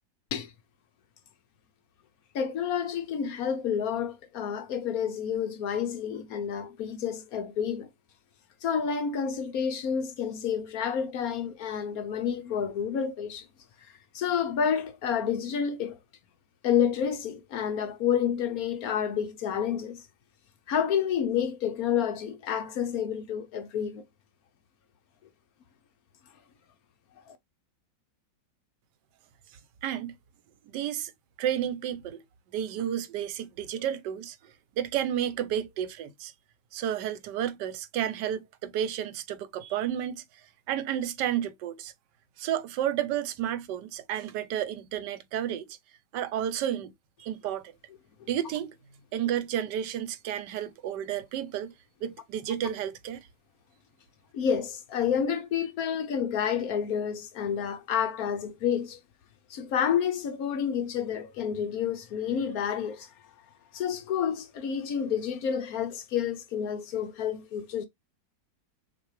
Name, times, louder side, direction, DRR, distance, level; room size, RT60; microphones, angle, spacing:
voice 1, 2.3-7.9 8.6-13.5 14.1-16.0 16.6-20.0 20.7-24.0 27.3-27.4 48.2-48.3 54.3-59.0 59.5-63.1 63.7-67.9, left 8 dB, 65° left, 1.1 m, -29 dB
voice 2, 29.8-30.2 30.7-31.1 31.4-32.2 32.5-36.3 36.7-40.2 40.7-41.9 42.4-45.7 46.1-46.9 47.2-47.7 48.3-48.8 49.1-51.7 52.0-53.3, right 10 dB, 90° right, 1.3 m, -31 dB
6.4 x 2.5 x 3.1 m
omnidirectional pair, 1.8 m